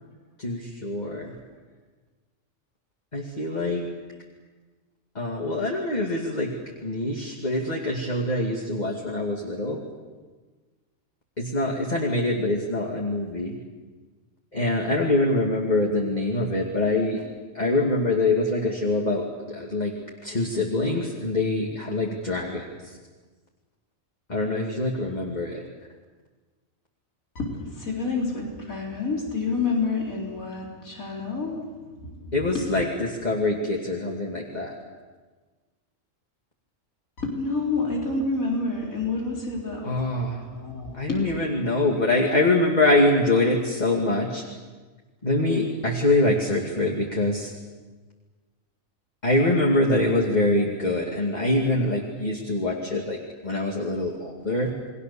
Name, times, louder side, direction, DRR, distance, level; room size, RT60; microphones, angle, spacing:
voice 1, 0.4-1.3 3.1-3.8 5.1-6.5 6.8-9.8 11.4-13.6 14.5-17.2 17.5-19.9 20.2-23.0 24.3-25.6 32.3-34.7 39.8-40.4 40.9-44.4 45.2-47.5 49.2-53.2 53.4-54.7, left 2 dB, 30° left, -1 dB, 2.5 m, -24 dB
voice 2, 27.3-31.7 32.0-32.7 37.2-40.1 40.5-41.2 41.6-41.9, left 3 dB, 90° left, -2 dB, 4.6 m, -29 dB
29.5 x 22.0 x 7.0 m, 1.4 s
omnidirectional pair, 1.4 m